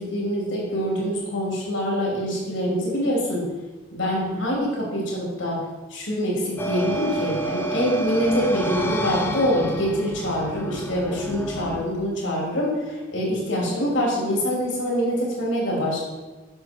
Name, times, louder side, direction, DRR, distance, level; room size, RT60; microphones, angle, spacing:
voice 1, 0.0-3.4 3.9-5.6 5.9-16.0, equal, 70° left, -3 dB, 2.8 m, -25 dB
sound 1, 6.6-11.8, right 1 dB, 10° left, 0.6 m, -29 dB
7.9 x 6.5 x 4.5 m, 1.2 s
head